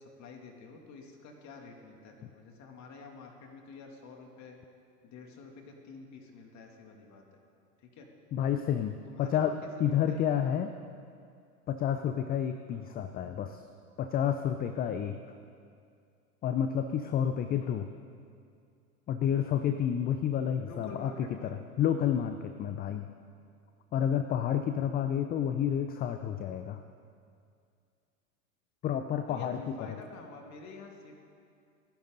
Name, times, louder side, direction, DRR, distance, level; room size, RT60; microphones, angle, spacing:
voice 1, 0.0-4.6 5.0-7.2 7.8-8.1 9.1-9.7 10.1-10.4 12.7-12.9 20.6-21.5 29.3-31.2, left 4 dB, 35° left, 2 dB, 2.6 m, -48 dB
voice 2, 8.3-9.5 9.8-10.7 11.7-13.6 14.0-15.2 16.4-17.9 19.1-21.1 21.4-23.1 23.9-26.8 28.8-29.8, left 9 dB, 20° left, 9 dB, 0.5 m, -30 dB
29.5 x 10.5 x 4.0 m, 2.3 s
hypercardioid pair, 95°, 47 cm